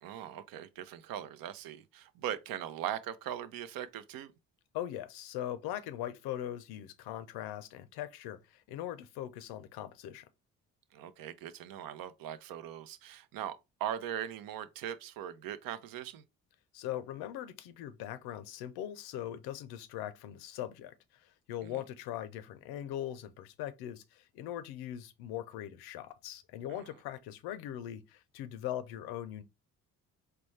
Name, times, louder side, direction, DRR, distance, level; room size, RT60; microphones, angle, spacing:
voice 1, 0.0-4.3 10.9-16.2 21.6-21.7, right 10 dB, 65° right, 0.6 m, -40 dB
voice 2, 4.7-10.3 16.7-29.4, left 12 dB, 75° left, 0.6 m, -41 dB
4.1 x 2.2 x 3.1 m
supercardioid pair, 60°, 37 cm